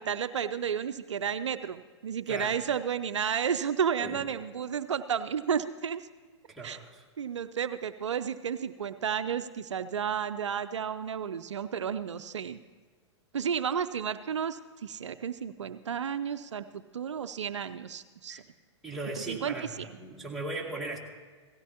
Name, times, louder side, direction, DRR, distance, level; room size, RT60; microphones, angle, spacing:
voice 1, 0.0-6.0 6.6-6.8 7.2-12.6 13.3-18.4 19.2-19.9, right 7 dB, 80° right, 12 dB, 0.5 m, -32 dB
voice 2, 2.3-2.6 4.0-4.2 6.5-7.0 18.3-18.4 18.8-21.0, right 2 dB, ahead, -4 dB, 2.1 m, -38 dB
17.5 x 15.5 x 2.9 m, 1.4 s
hypercardioid pair, 110°, 15 cm